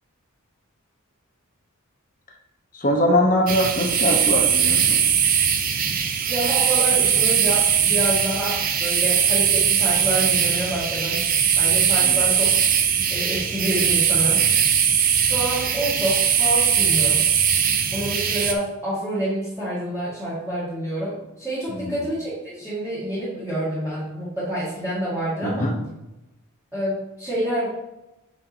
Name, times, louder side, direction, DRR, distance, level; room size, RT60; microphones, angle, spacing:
voice 1, 2.7-5.0 12.0-12.2 21.7-22.0 25.4-25.8, left 1 dB, 35° left, 2 dB, 1.1 m, -22 dB
sound 1, 3.5-18.5, right 8 dB, 40° right, 0.6 m, -20 dB
voice 2, 6.3-11.2 11.6-12.5 13.1-14.4 15.2-17.3 17.9-25.7 26.7-27.7, right 1 dB, 10° right, -12 dB, 2.0 m, -27 dB
8.5 x 4.9 x 2.9 m, 0.94 s
head